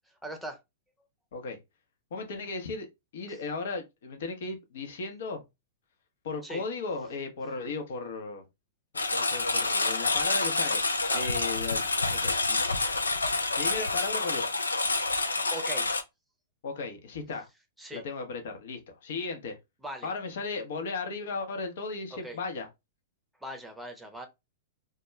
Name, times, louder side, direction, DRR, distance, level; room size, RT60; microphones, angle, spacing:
voice 1, 0.2-0.6 3.3-3.4 6.4-6.6 11.1-11.3 15.5-16.0 17.8-18.0 19.8-20.1 22.1-22.4 23.4-24.3, right 1 dB, 5° right, 0.7 m, -40 dB
voice 2, 2.1-2.9 3.1-5.4 6.2-8.4 8.9-10.8 11.1-12.6 13.6-14.6 16.6-17.5 17.9-19.6 20.0-22.7, left 4 dB, 65° left, 0.8 m, -36 dB
Engine, 8.9-16.0, left 3 dB, 90° left, 0.4 m, -28 dB
2.3 x 2.2 x 3.0 m
hypercardioid pair, 110°, 0 cm